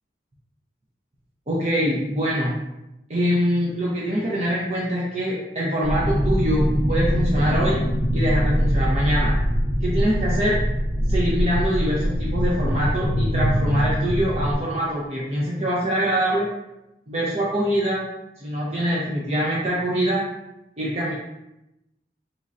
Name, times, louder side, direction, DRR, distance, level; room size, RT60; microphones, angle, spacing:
voice 1, 1.5-2.5 3.1-7.8 8.1-9.4 9.8-10.6 11.1-16.5 17.1-18.0 18.4-20.2 20.8-21.1, equal, 40° right, -6 dB, 0.6 m, -24 dB
sound 1, 5.8-14.6, equal, ahead, 1.4 m, -22 dB
3.7 x 3.1 x 2.5 m, 0.91 s
head